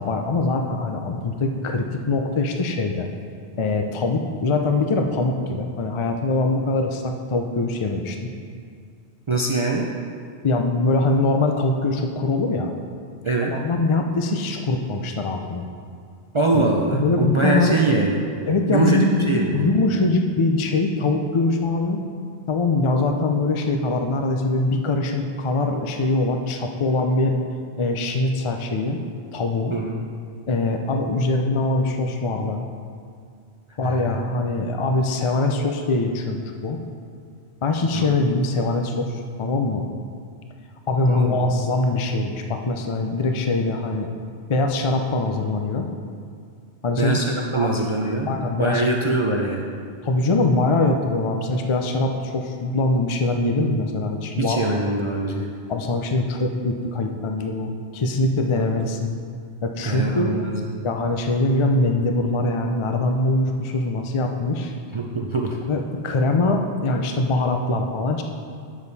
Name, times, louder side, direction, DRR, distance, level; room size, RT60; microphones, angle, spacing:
voice 1, 0.0-3.1 3.6-8.3 10.4-12.7 13.5-15.6 16.5-17.8 18.4-22.0 22.5-27.3 27.8-29.0 29.3-29.7 30.5-32.6 33.8-36.8 37.6-39.8 40.9-44.1 44.5-45.9 46.8-47.2 47.6-47.7 48.3-48.8 50.0-54.6 55.7-59.2 59.6-60.3 60.8-64.7 65.6-68.2, left 2 dB, 40° left, 4 dB, 0.4 m, -23 dB
voice 2, 9.3-9.9 13.2-13.6 16.3-18.3 18.7-19.7 29.7-30.0 33.8-34.2 37.9-38.1 41.1-41.4 47.0-49.7 54.4-55.5 58.6-58.7 59.8-60.7 64.9-65.6, right 2 dB, 40° right, -1 dB, 0.4 m, -23 dB
8.7 x 7.3 x 4.1 m, 2.2 s
omnidirectional pair, 1.2 m